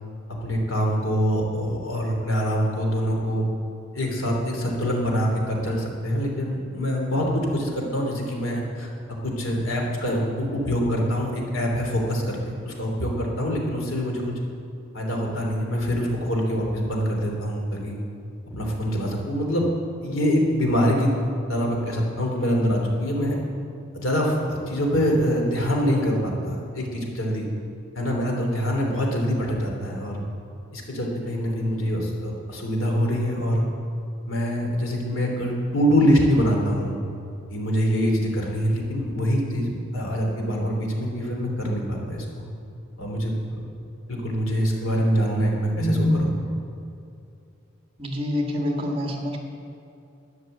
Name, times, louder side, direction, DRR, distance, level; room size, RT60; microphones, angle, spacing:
voice 1, 0.4-3.5 3.9-8.9 9.2-14.2 14.9-18.0 18.5-19.6 20.0-21.1 21.5-23.4 23.9-27.5 27.9-30.2 30.7-33.7 34.3-37.0 37.5-42.2 43.0-43.6 44.1-46.3, equal, 85° left, 0 dB, 3.2 m, -24 dB
voice 2, 45.8-46.5 48.0-49.4, left 1 dB, 30° right, 1 dB, 1.9 m, -25 dB
12.5 x 9.7 x 7.9 m, 2.7 s
head